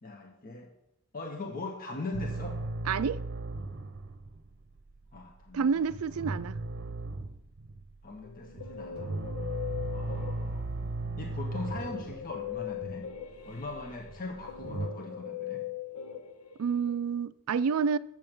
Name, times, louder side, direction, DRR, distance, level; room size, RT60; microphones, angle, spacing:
voice 1, 0.0-0.7 1.1-2.6 5.1-5.8 8.0-9.1 9.9-10.7 11.2-13.1 13.4-15.6, left 2 dB, 40° left, 1.1 m, -40 dB
sound 1, 2.1-14.9, right 2 dB, 50° right, 0.7 m, -37 dB
voice 2, 2.9-3.2 5.5-6.6 16.6-18.0, right 6 dB, 75° right, 0.4 m, -28 dB
Guitar, 8.2-10.8 11.5-16.9, left 9 dB, 90° left, 0.9 m, -40 dB
7.5 x 7.1 x 6.0 m
head